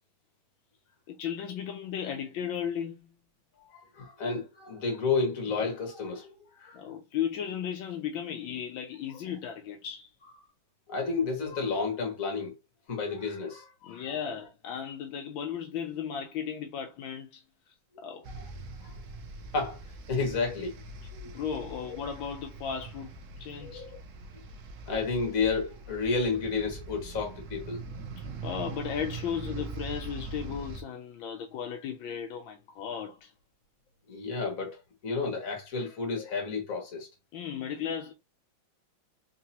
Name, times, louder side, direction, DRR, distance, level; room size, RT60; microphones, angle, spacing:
voice 1, 1.1-3.1 6.7-10.1 13.9-17.4 18.0-18.3 21.2-23.9 28.4-33.3 37.3-38.1, left 8 dB, 80° left, 1.4 m, -35 dB
voice 2, 3.6-6.8 10.9-12.5 12.9-14.1 18.3-18.5 18.8-18.9 19.5-19.8 20.1-20.8 21.1-21.3 23.6-24.0 24.9-27.8 34.1-37.1, left 4 dB, 45° left, 1.7 m, -31 dB
sound 1, 18.2-30.8, right 3 dB, 85° right, 0.7 m, -42 dB
3.9 x 2.8 x 2.8 m
omnidirectional pair, 2.2 m